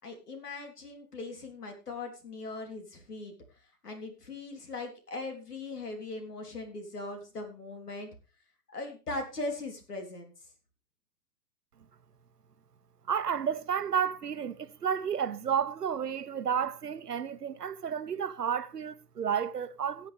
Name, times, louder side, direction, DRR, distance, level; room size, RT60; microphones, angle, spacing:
voice 1, 0.0-3.3 3.8-8.1 8.7-10.3, left 2 dB, 80° left, 3.8 m, -39 dB
voice 2, 13.1-20.1, right 7 dB, 85° right, 1.0 m, -31 dB
17.5 x 7.8 x 3.5 m
hypercardioid pair, 115°, 46 cm